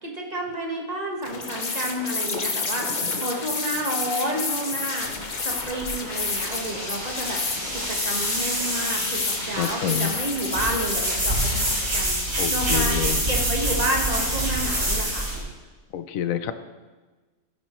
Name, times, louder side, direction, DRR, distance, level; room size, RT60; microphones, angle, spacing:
voice 1, 0.0-5.1 5.4-7.4 7.7-11.7 11.9-12.2 12.5-15.3, right 1 dB, 30° right, 0 dB, 1.5 m, -30 dB
sound 1, 1.2-11.8, left 4 dB, 35° left, 1.0 m, -30 dB
sound 2, 5.0-15.4, right 1 dB, 50° right, 4.0 m, -27 dB
voice 2, 9.6-10.1 12.4-13.2 15.9-16.5, left 9 dB, 75° left, 11 dB, 1.1 m, -27 dB
13.5 x 10.5 x 3.1 m, 1.3 s
omnidirectional pair, 1.5 m